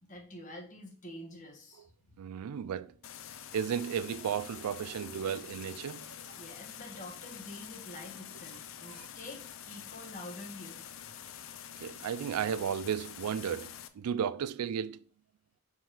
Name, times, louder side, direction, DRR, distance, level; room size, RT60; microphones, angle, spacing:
voice 1, 0.1-1.8 6.4-10.8, left 1 dB, 35° left, 1.6 m, -47 dB
voice 2, 2.2-2.9 3.5-6.4 8.9-9.1 11.8-15.0, right 8 dB, 85° right, 0.3 m, -34 dB
sound 1, 3.0-13.9, left 9 dB, 60° left, 0.5 m, -47 dB
5.9 x 4.8 x 3.3 m
head